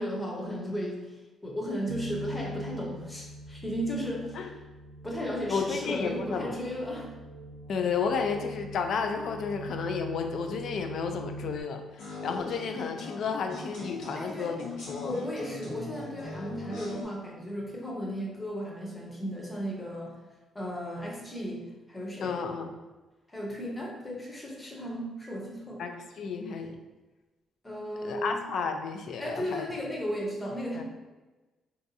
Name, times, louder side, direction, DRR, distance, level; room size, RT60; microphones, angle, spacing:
voice 1, 0.0-4.5 5.0-7.1 14.2-14.6 15.0-20.2 20.5-22.4 23.3-25.8 27.6-28.4 29.2-30.8, equal, 20° left, -1 dB, 0.7 m, -35 dB
sound 1, 1.9-11.6, right 1 dB, 85° right, 0.5 m, -43 dB
voice 2, 5.5-6.6 7.7-15.2 22.2-22.7 25.8-26.8 28.0-29.7 30.8-30.9, left 5 dB, 65° left, 5 dB, 0.3 m, -32 dB
sound 2, 12.0-17.1, left 3 dB, 85° left, 0.8 m, -40 dB
2.6 x 2.3 x 2.6 m, 1.2 s
cardioid pair, 90°, 0 cm